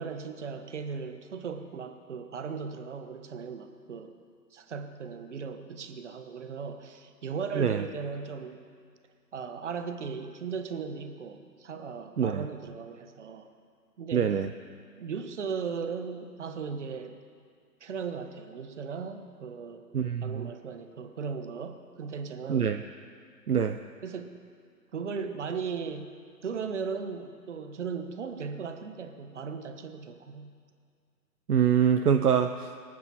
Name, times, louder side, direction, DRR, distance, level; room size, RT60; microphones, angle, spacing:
voice 1, 0.0-4.1 4.5-8.6 9.3-13.5 14.0-14.3 15.0-17.2 17.8-19.9 20.2-22.7 24.0-24.3 24.9-26.1 26.4-30.5, right 5 dB, 45° right, 7 dB, 1.3 m, -37 dB
voice 2, 14.1-14.5 19.9-20.5 22.5-22.8 23.5-23.8 31.5-32.8, right 8 dB, 65° right, 7 dB, 0.8 m, -25 dB
23.0 x 9.3 x 5.7 m, 2.2 s
figure-of-eight pair, 140°, 50 cm